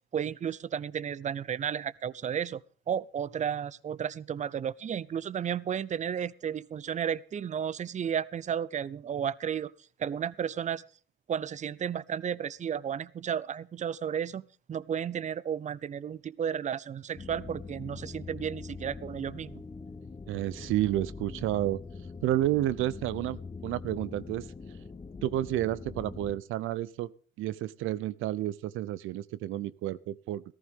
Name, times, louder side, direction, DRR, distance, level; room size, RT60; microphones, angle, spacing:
voice 1, 0.1-2.6 2.9-9.7 10.0-10.8 11.3-19.6, right 8 dB, 35° right, 0.5 m, -33 dB
sound 1, 17.2-26.4, left 4 dB, 25° left, 1.0 m, -43 dB
voice 2, 20.3-21.8 22.2-24.5 25.2-27.1 27.4-30.4, right 14 dB, 85° right, 0.5 m, -30 dB
14.5 x 14.5 x 3.6 m
cardioid pair, 90°, 20 cm